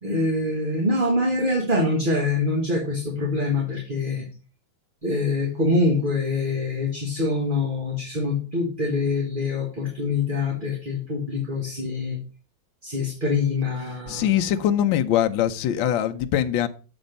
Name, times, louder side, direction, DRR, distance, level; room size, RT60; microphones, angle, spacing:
voice 1, 0.0-4.3 5.0-12.2 12.8-14.2, left 2 dB, 25° right, 1.6 m, -24 dB
voice 2, 14.1-16.7, left 11 dB, 75° left, 1.4 m, -22 dB
7.0 x 6.3 x 5.2 m
omnidirectional pair, 2.2 m